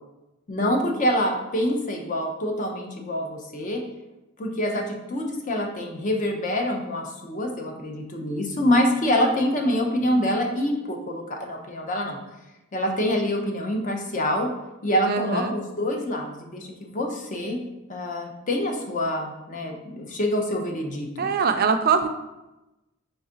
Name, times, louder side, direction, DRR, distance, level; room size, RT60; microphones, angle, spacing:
voice 1, 0.5-3.8 4.4-12.2 12.7-14.5 14.8-17.6 17.9-21.2, left 1 dB, 35° left, 2 dB, 0.6 m, -26 dB
voice 2, 15.0-15.5 21.2-22.1, right 5 dB, 45° right, 7 dB, 0.4 m, -22 dB
3.9 x 3.4 x 3.8 m, 0.99 s
head